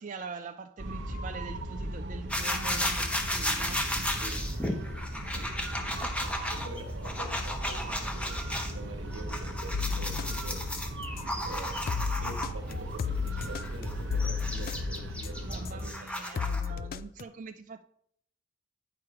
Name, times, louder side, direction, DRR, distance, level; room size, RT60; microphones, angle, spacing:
voice 1, 0.0-3.9 5.3-5.7 6.0-6.7 15.4-17.8, right 4 dB, 40° right, 7 dB, 0.3 m, -44 dB
sound 1, 0.8-15.9, right 1 dB, 60° right, 0.8 m, -37 dB
sound 2, 2.3-8.7 9.1-12.7 13.3-16.7, left 1 dB, 5° left, 0.8 m, -34 dB
voice 2, 4.2-4.8 5.3-5.5 6.2-10.6 11.4-11.9 12.2-16.9, right 2 dB, 85° right, 4 dB, 1.3 m, -46 dB
sound 3, 9.7-11.4 11.9-15.8 16.4-17.2, left 6 dB, 50° left, 0.3 m, -34 dB
9.6 x 4.6 x 4.8 m, 0.68 s
head